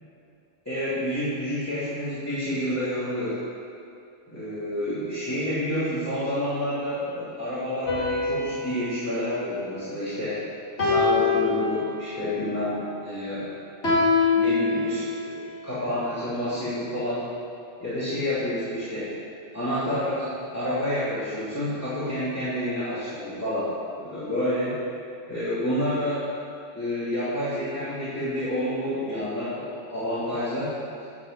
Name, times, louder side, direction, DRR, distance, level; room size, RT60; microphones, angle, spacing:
voice 1, 0.6-3.4 4.3-10.4 10.8-13.5 14.3-15.4 15.6-17.3 17.8-19.1 19.5-23.7 24.0-24.8 25.3-26.3 26.7-30.7, equal, 10° left, -12 dB, 2.6 m, -29 dB
sound 1, 7.9-10.2 10.8-12.3 13.8-15.3, left 4 dB, 60° left, 2.5 m, -25 dB
10.5 x 6.2 x 7.3 m, 2.6 s
omnidirectional pair, 1.3 m